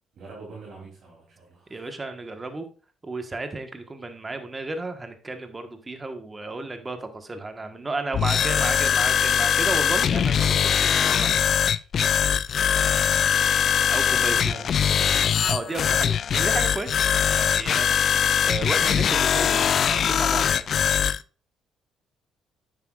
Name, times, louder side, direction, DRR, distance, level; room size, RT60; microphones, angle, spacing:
voice 1, 0.1-2.0 13.9-15.2, right 3 dB, 60° right, 3.2 m, -44 dB
voice 2, 1.7-2.6 3.0-11.6 13.9-14.5 15.5-17.0 17.3-20.9, right 2 dB, 25° right, 1.4 m, -33 dB
sound 1, 8.1-21.2, left 8 dB, 60° left, 0.3 m, -22 dB
9.7 x 7.9 x 2.5 m
supercardioid pair, 60°, 0 cm